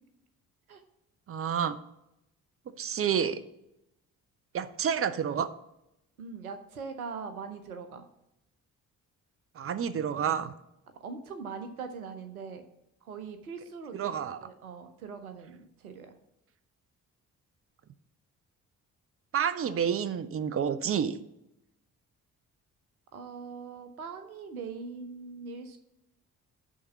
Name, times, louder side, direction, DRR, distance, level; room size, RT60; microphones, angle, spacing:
voice 1, 1.3-1.8 2.8-3.4 4.5-5.5 9.6-10.5 13.9-14.4 19.3-21.2, right 8 dB, 30° right, 14 dB, 0.7 m, -29 dB
voice 2, 6.2-8.0 11.0-12.6 13.0-16.1 23.1-25.8, right 5 dB, 90° right, 8 dB, 0.6 m, -41 dB
10.0 x 3.6 x 6.8 m, 0.85 s
figure-of-eight pair, 40°, 42 cm